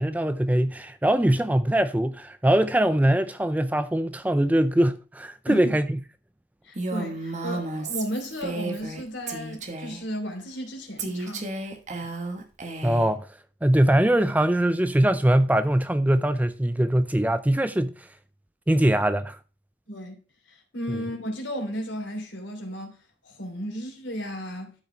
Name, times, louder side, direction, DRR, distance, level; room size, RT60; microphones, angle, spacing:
voice 1, 0.0-6.0 12.8-13.3 13.6-17.9 18.7-19.4 20.9-21.0, right 1 dB, 10° right, 0.4 m, -22 dB
voice 2, 5.5-5.8 6.6-11.5 19.9-20.2 20.5-22.9 23.2-24.7, equal, 80° left, 3.1 m, -34 dB
Female speech woman speaking, 6.8-9.0 9.3-10.0 11.0-13.1, right 2 dB, 40° right, 1.4 m, -33 dB
12.5 x 5.6 x 3.3 m
head